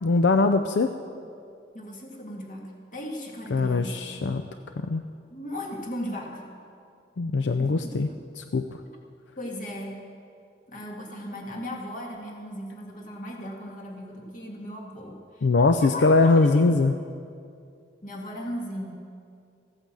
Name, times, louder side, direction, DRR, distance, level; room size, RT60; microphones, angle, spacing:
voice 1, 0.0-1.0 3.5-4.4 4.8-5.0 7.2-8.1 8.4-8.8 15.4-16.9, left 3 dB, 85° left, 8 dB, 0.5 m, -21 dB
voice 2, 1.7-4.0 5.3-6.4 7.6-7.7 8.1-8.2 9.4-10.0 10.7-15.5 15.8-16.8 18.0-18.9, left 1 dB, 45° left, -1 dB, 2.1 m, -37 dB
15.0 x 8.9 x 7.5 m, 2.4 s
head